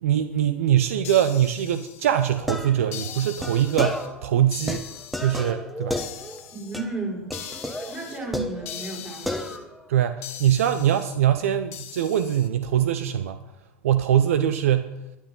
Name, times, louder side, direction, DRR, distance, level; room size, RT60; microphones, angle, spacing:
voice 1, 0.0-4.9 5.2-6.0 9.9-13.4 13.8-14.9, right 10 dB, 75° right, 10 dB, 0.6 m, -22 dB
sound 1, 1.0-2.4 2.9-4.1 4.5-5.5 6.0-6.8 7.3-8.2 8.6-9.6 10.2-11.2 11.7-12.5, left 10 dB, 75° left, 1.6 m, -40 dB
sound 2, 2.3-4.3 4.7-6.5 6.7-7.0 7.3-9.0 9.3-9.8, left 1 dB, ahead, 1.1 m, -33 dB
voice 2, 6.5-7.3 7.9-9.5, right 3 dB, 25° right, -2 dB, 5.4 m, -33 dB
14.5 x 10.0 x 3.9 m, 0.95 s
hypercardioid pair, 95°, 8 cm